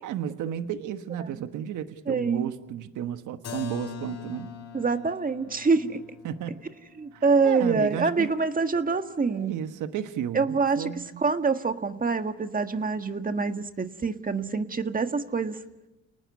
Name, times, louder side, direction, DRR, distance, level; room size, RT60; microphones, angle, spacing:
voice 1, 0.0-4.5 6.2-6.6 7.1-8.3 9.3-11.2, right 9 dB, 80° right, 9 dB, 1.4 m, -33 dB
voice 2, 2.1-2.5 4.7-6.0 7.0-9.6 10.3-10.9 11.2-15.6, right 4 dB, 30° right, 8 dB, 1.7 m, -26 dB
Keyboard (musical), 3.4-9.0, left 7 dB, 60° left, 4.2 m, -43 dB
29.5 x 19.0 x 9.7 m, 1.0 s
cardioid pair, 90°, 30 cm